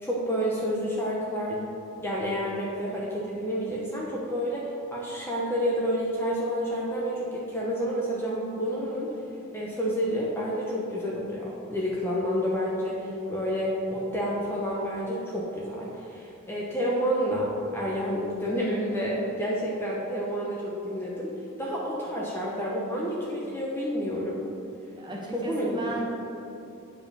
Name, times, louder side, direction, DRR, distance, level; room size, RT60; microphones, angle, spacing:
voice 1, 0.0-1.6 2.0-9.1 9.5-21.3 21.6-24.4 25.3-26.0, equal, 10° left, -5 dB, 0.9 m, -29 dB
voice 2, 24.9-26.0, right 1 dB, 20° right, -3 dB, 1.3 m, -35 dB
9.1 x 4.9 x 5.4 m, 2.8 s
head